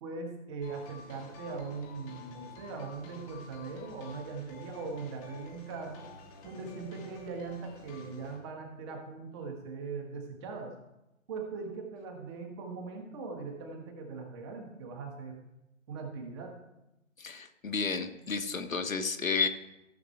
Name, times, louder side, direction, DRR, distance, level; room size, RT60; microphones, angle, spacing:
voice 1, 0.0-6.1 6.4-10.7 11.3-15.4 15.9-16.5, right 4 dB, 20° right, 3 dB, 1.5 m, -40 dB
sound 1, 0.6-8.4, left 3 dB, 15° left, 1.1 m, -50 dB
voice 2, 17.2-19.5, left 5 dB, 75° left, 7 dB, 1.4 m, -31 dB
15.0 x 7.1 x 4.4 m, 0.93 s
figure-of-eight pair, 145°, 40 cm